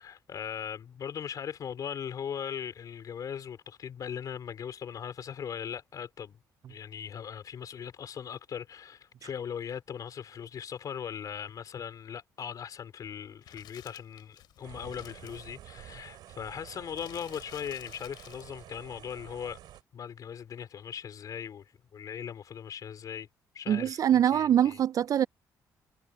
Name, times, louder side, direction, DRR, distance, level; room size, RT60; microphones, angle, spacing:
voice 1, 0.0-6.4 6.7-19.6 19.9-23.3 23.5-24.8, left 8 dB, 55° left, 4.4 m, -39 dB
sound 1, 13.4-15.5 16.9-18.6 19.7-19.8, left 14 dB, 85° left, 6.2 m, -53 dB
sound 2, 14.6-19.8, right 13 dB, 80° right, 4.1 m, -50 dB
voice 2, 23.7-25.3, right 10 dB, 55° right, 0.4 m, -24 dB
cardioid pair, 85°, 7 cm